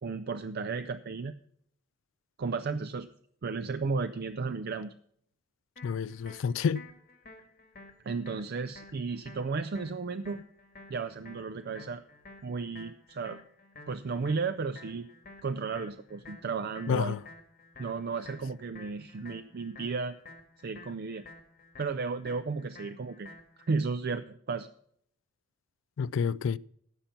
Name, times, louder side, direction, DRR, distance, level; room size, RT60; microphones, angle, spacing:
voice 1, 0.0-1.4 2.4-3.1 3.4-4.9 8.0-10.4 10.9-12.0 12.4-13.4 13.9-15.1 15.4-17.2 17.8-20.2 20.6-21.3 21.8-23.4 23.7-24.7, right 4 dB, 55° right, 0.5 m, -34 dB
voice 2, 5.8-6.8 16.9-17.2 26.0-26.6, left 6 dB, 70° left, 0.3 m, -29 dB
sound 1, 5.8-23.7, left 2 dB, 50° left, 1.9 m, -52 dB
15.0 x 5.9 x 5.7 m
head